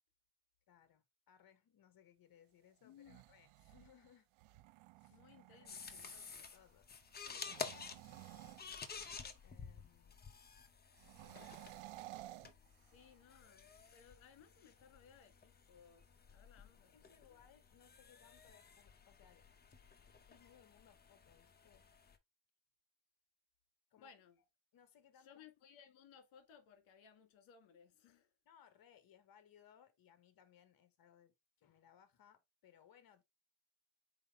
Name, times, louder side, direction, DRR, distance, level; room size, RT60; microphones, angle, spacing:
voice 1, 0.7-4.3 5.0-5.2 5.5-8.7 9.4-10.2 11.2-11.6 16.9-19.5 20.3-21.9 23.9-24.1 24.7-25.4 28.4-33.2, left 9 dB, 45° left, 1.3 m, -67 dB
voice 2, 2.8-3.2 5.1-6.1 12.8-17.4 24.0-24.4 25.2-28.3, left 7 dB, 70° left, 1.8 m, -63 dB
sound 1, 2.8-6.6 7.3-9.4 10.9-13.2, right 17 dB, 85° right, 0.6 m, -55 dB
sound 2, 5.7-22.2, left 5 dB, 20° left, 0.7 m, -52 dB
5.6 x 4.6 x 3.6 m
cardioid pair, 155°, 47 cm